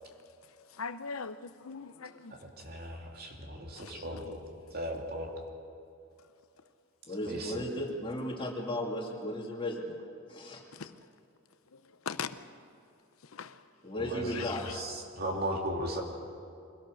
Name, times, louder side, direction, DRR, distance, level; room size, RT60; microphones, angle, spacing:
voice 1, 0.8-2.3 3.8-4.2 10.8-10.9 12.1-12.3 13.3-13.5 14.3-14.7, left 6 dB, 90° left, 0.8 m, -40 dB
voice 2, 2.3-4.4 4.7-5.3 7.3-7.6 13.9-16.0, right 1 dB, 45° right, 2.6 m, -37 dB
voice 3, 7.1-10.0 10.3-10.6 13.8-14.6, left 1 dB, 25° left, 2.5 m, -35 dB
24.0 x 17.0 x 6.5 m
head